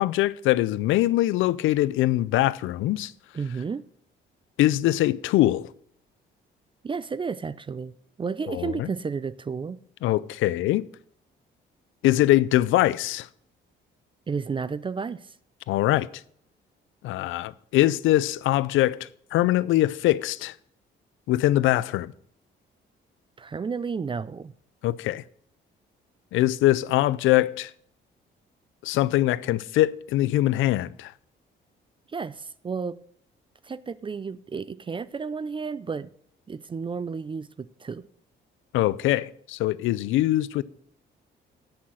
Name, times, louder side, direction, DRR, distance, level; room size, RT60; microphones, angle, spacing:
voice 1, 0.0-3.1 4.6-5.7 8.5-8.9 10.0-10.8 12.0-13.3 15.7-16.1 17.0-19.0 19.3-20.5 21.3-22.1 24.8-25.2 26.3-27.7 28.8-31.1 38.7-40.6, left 15 dB, 85° left, 0.4 m, -22 dB
voice 2, 3.3-3.8 6.8-7.9 8.2-9.8 14.3-15.3 23.4-24.5 32.1-33.0 33.6-36.1 36.5-38.1, right 5 dB, 25° right, 0.4 m, -32 dB
8.6 x 5.7 x 7.6 m
cardioid pair, 90°, 20 cm